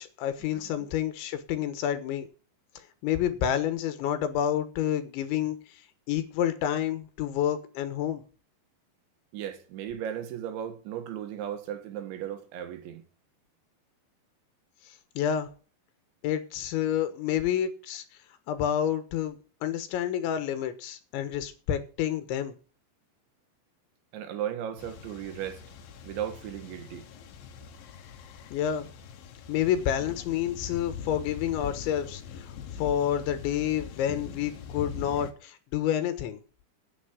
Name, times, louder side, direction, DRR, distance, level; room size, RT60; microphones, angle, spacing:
voice 1, 0.0-2.3 3.0-5.8 6.1-8.2 15.2-15.5 16.2-18.1 18.5-22.6 28.5-28.9 29.5-32.5 32.8-36.4, left 10 dB, 80° left, 3.7 m, -29 dB
voice 2, 9.3-13.0 24.1-25.6 26.0-27.1, right 10 dB, 80° right, 3.8 m, -36 dB
sound 1, 24.8-35.3, left 7 dB, 65° left, 2.6 m, -42 dB
10.0 x 9.0 x 7.3 m
omnidirectional pair, 5.3 m